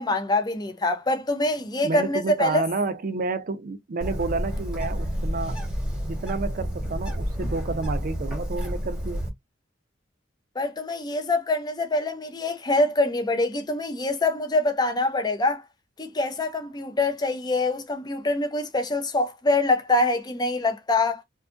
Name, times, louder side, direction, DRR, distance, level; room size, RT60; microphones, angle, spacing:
voice 1, 0.0-2.6 10.6-15.6 16.0-21.2, left 2 dB, 20° left, 0.5 m, -24 dB
voice 2, 1.8-5.6 6.0-9.2, right 3 dB, 45° right, 0.5 m, -30 dB
Bird, 4.0-9.3, equal, 5° right, 1.1 m, -30 dB
2.6 x 2.3 x 2.5 m
head